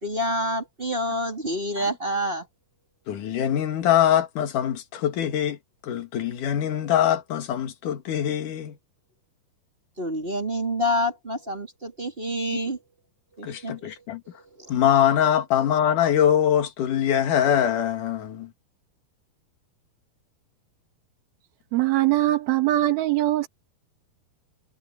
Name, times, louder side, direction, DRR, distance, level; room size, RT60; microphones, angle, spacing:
voice 1, 0.0-2.5 10.0-12.8 13.4-14.0 14.6-14.8, equal, 15° right, 3.0 m, -28 dB
voice 2, 3.1-5.6 5.8-8.8 13.4-14.2 14.7-18.5, left 10 dB, 60° left, 3.1 m, -23 dB
voice 3, 21.7-23.5, right 15 dB, 70° right, 3.4 m, -22 dB
omnidirectional pair, 4.7 m